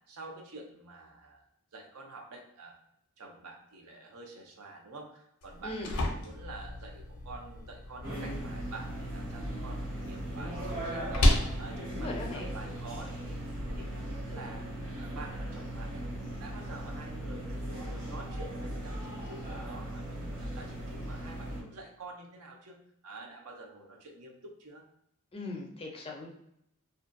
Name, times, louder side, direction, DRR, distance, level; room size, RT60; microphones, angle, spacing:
voice 1, 0.1-1.5 1.7-2.8 3.2-11.3 11.6-13.4 13.7-16.0 16.3-24.8, right 3 dB, 70° right, 2 dB, 0.6 m, -48 dB
sound 1, 5.4-13.4, left 1 dB, 80° left, 0.5 m, -33 dB
sound 2, 8.0-21.6, right 1 dB, 40° right, 1.0 m, -38 dB
voice 2, 11.9-12.5 25.3-26.3, left 2 dB, 25° left, 1 dB, 0.4 m, -39 dB
2.5 x 2.2 x 2.5 m, 0.74 s
head